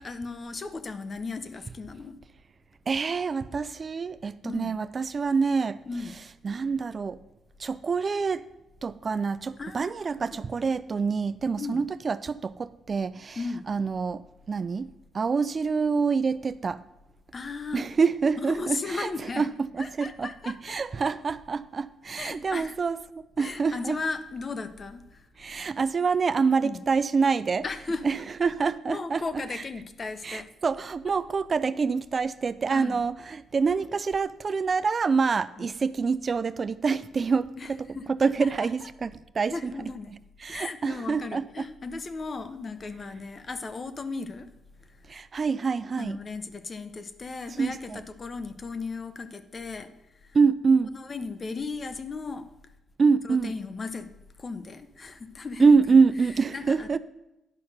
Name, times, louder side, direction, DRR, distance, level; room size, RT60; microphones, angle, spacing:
voice 1, 0.0-2.2 4.4-4.7 5.9-6.2 9.6-9.9 10.3-10.4 11.6-11.8 13.4-13.6 17.3-17.8 18.4-19.5 19.8-20.8 22.1-22.8 23.4-25.3 26.6-26.8 27.6-28.0 28.4-28.5 28.9-30.5 32.7-33.0 35.6-35.7 37.6-38.1 38.4-38.7 39.5-40.1 40.5-44.5 44.9-45.0 46.0-49.9 50.2-50.4 50.9-52.5 53.2-54.1 54.4-56.0 56.5-57.0, left 4 dB, 35° left, 0.8 m, -36 dB
voice 2, 2.9-5.8 6.4-7.2 7.6-8.4 8.8-13.4 13.7-14.9 15.1-16.8 17.7-19.1 19.4-19.5 19.7-23.0 23.4-24.0 25.4-27.6 28.0-29.2 30.2-37.8 38.2-39.7 40.4-41.4 45.1-46.2 47.6-48.0 50.3-50.9 53.0-53.5 55.6-57.0, right 5 dB, 40° right, 0.3 m, -26 dB
9.8 x 5.7 x 6.4 m
cardioid pair, 90°, 0 cm